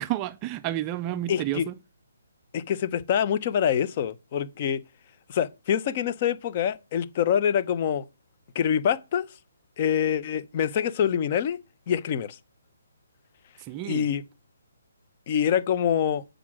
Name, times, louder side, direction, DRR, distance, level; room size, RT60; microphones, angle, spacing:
voice 1, 0.0-1.7 13.6-14.1, right 13 dB, 20° right, 0.4 m, -30 dB
voice 2, 1.3-1.7 2.5-4.8 5.3-8.0 8.5-9.3 9.8-11.6 11.9-12.4 13.8-14.2 15.3-16.2, left 8 dB, 35° left, 0.8 m, -25 dB
8.3 x 5.1 x 6.1 m
hypercardioid pair, 155°, 0 cm